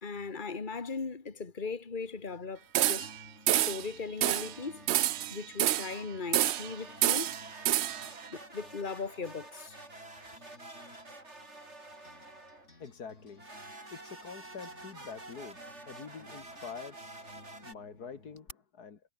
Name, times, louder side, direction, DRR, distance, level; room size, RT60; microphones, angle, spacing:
voice 1, 0.0-3.1 3.5-4.9 5.3-7.4 8.3-9.8, left 4 dB, 30° left, 2.1 m, -38 dB
sound 1, 2.0-18.5, left 3 dB, 50° left, 4.1 m, -58 dB
sound 2, 2.7-3.2 3.5-3.9 4.2-4.5 4.9-6.0 6.3-6.7 7.0-8.1, right 13 dB, 75° right, 0.6 m, -28 dB
sound 3, 4.2-5.3 6.3-12.7 13.4-17.7, right 2 dB, 45° right, 5.1 m, -49 dB
voice 2, 12.8-13.4 13.9-17.2 17.6-19.0, left 6 dB, 85° left, 2.5 m, -46 dB
omnidirectional pair, 1.6 m